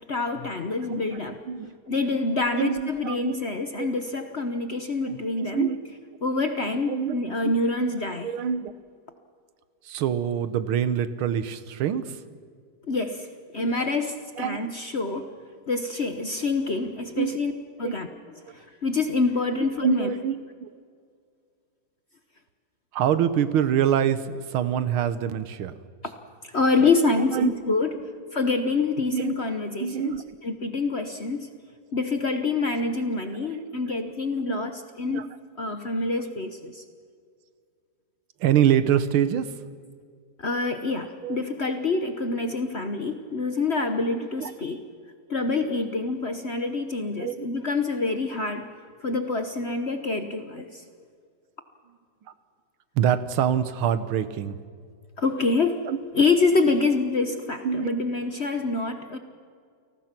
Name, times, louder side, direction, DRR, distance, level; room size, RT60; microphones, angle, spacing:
voice 1, 0.0-1.4 1.9-5.7 6.2-8.3 12.9-15.3 15.7-17.5 17.8-18.1 18.5-20.1 26.0-26.1 26.4-30.1 30.4-31.5 31.9-35.3 35.6-36.8 40.4-44.8 45.3-48.7 49.0-50.8 55.2-55.8 56.1-59.2, left 3 dB, 40° left, 7 dB, 1.0 m, -26 dB
voice 2, 2.6-3.4 3.8-3.9 5.0-5.8 6.9-7.6 7.8-7.9 8.2-8.7 9.9-12.2 13.6-13.7 14.4-14.6 17.2-17.4 17.8-18.0 19.8-20.7 22.9-25.7 27.3-27.5 27.9-28.0 29.1-29.3 29.8-30.2 34.5-34.6 35.0-35.3 38.4-39.5 41.2-41.4 44.1-44.5 47.2-47.5 53.0-54.6 55.9-56.0 57.6-58.1, right 9 dB, 80° right, 13 dB, 1.8 m, -25 dB
29.0 x 19.0 x 6.0 m, 2.1 s
omnidirectional pair, 2.3 m